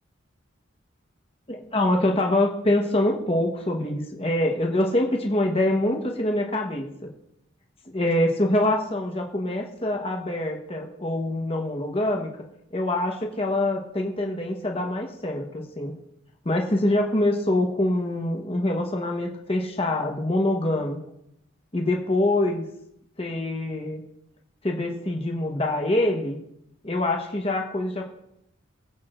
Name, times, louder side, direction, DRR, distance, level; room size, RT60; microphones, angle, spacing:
voice 1, 1.5-6.9 7.9-12.3 12.7-15.9 16.4-21.0 21.7-22.6 23.2-24.0 24.6-26.4 26.8-28.1, left 1 dB, 30° left, 1 dB, 1.1 m, -25 dB
21.5 x 8.4 x 2.5 m, 0.80 s
head